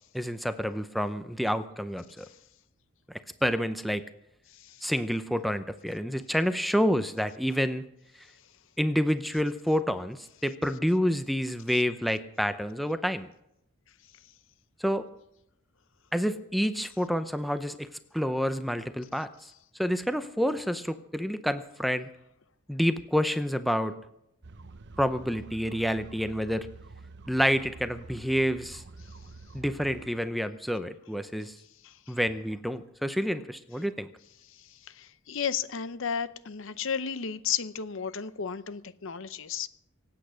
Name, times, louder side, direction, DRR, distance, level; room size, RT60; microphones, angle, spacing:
voice 1, 0.1-2.3 3.4-4.0 4.8-7.8 8.8-13.3 14.8-15.1 16.1-17.9 18.1-19.3 19.8-22.1 22.7-23.9 25.0-26.7 27.3-28.8 29.5-31.6 32.1-34.1, equal, ahead, 10 dB, 0.6 m, -28 dB
voice 2, 4.5-4.9 31.8-32.2 34.5-39.7, left 7 dB, 60° left, 14 dB, 0.7 m, -34 dB
sound 1, 24.4-30.1, right 3 dB, 55° right, 0.8 m, -47 dB
25.0 x 8.8 x 6.3 m, 0.82 s
head